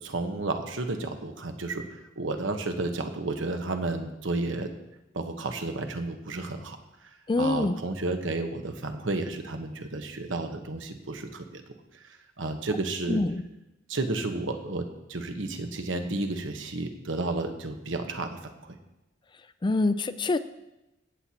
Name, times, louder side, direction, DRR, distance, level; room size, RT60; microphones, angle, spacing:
voice 1, 0.0-1.8 2.2-4.7 5.1-6.8 7.4-11.6 12.4-13.2 13.9-18.8, right 2 dB, 90° right, 6 dB, 1.1 m, -32 dB
voice 2, 7.3-7.8 13.1-13.4 19.6-20.4, left 2 dB, 25° left, 13 dB, 0.4 m, -25 dB
16.5 x 7.7 x 2.9 m, 0.95 s
head